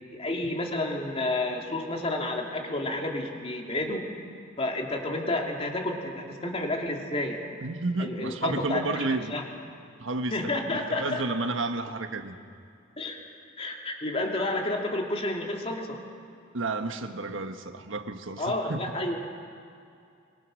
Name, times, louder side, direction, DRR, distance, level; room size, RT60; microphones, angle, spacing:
voice 1, 0.0-4.1 4.6-7.5 8.0-9.4 10.3-11.2 13.0-13.2 13.6-16.0 18.4-19.2, left 2 dB, 30° left, 1 dB, 2.5 m, -30 dB
voice 2, 7.6-9.3 10.0-12.4 16.5-18.8, right 3 dB, 75° right, 6 dB, 1.4 m, -31 dB
23.5 x 23.5 x 6.4 m, 2.4 s
head